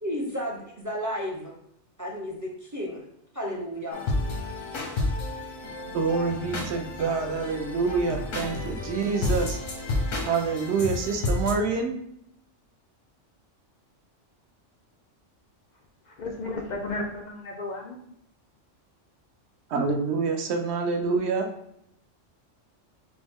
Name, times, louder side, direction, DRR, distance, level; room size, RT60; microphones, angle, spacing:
voice 1, 0.0-1.5 2.0-3.0 3.3-4.0, equal, 25° right, -2 dB, 0.4 m, -32 dB
sound 1, 3.9-11.5, left 2 dB, 85° left, 1.2 m, -31 dB
voice 2, 5.9-9.6 10.2-11.9 19.7-21.5, right 4 dB, 65° right, 4 dB, 0.8 m, -26 dB
voice 3, 16.1-18.0, left 2 dB, 70° left, 1 dB, 0.4 m, -33 dB
4.3 x 2.0 x 3.5 m, 0.75 s
omnidirectional pair, 1.3 m